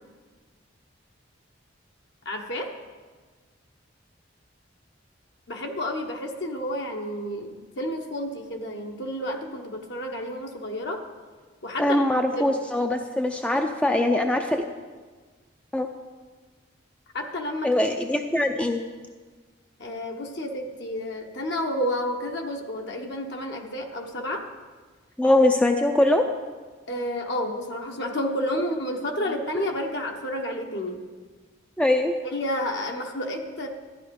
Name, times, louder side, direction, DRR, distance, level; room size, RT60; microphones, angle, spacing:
voice 1, 2.2-2.7 5.5-11.0 11.6-12.5 17.1-17.7 19.8-24.5 26.9-31.0 32.3-33.7, left 1 dB, 60° left, 2 dB, 1.2 m, -30 dB
voice 2, 11.8-14.6 15.7-15.9 17.6-18.8 25.2-26.3 31.8-32.1, left 1 dB, 5° left, 4 dB, 0.5 m, -22 dB
13.5 x 10.0 x 5.3 m, 1.4 s
head